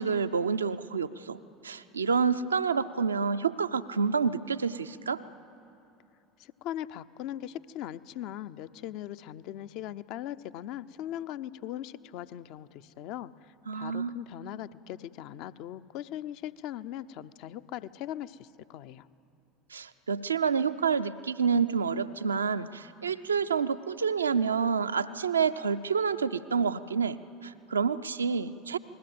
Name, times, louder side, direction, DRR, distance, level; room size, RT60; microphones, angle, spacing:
voice 1, 0.0-1.4 1.6-5.2 13.7-14.2 19.7-27.2 27.4-28.8, right 6 dB, 80° right, 11 dB, 0.6 m, -28 dB
voice 2, 6.4-19.1, left 12 dB, 55° left, 13 dB, 0.7 m, -40 dB
28.5 x 20.5 x 7.8 m, 2.9 s
figure-of-eight pair, 70°, 0 cm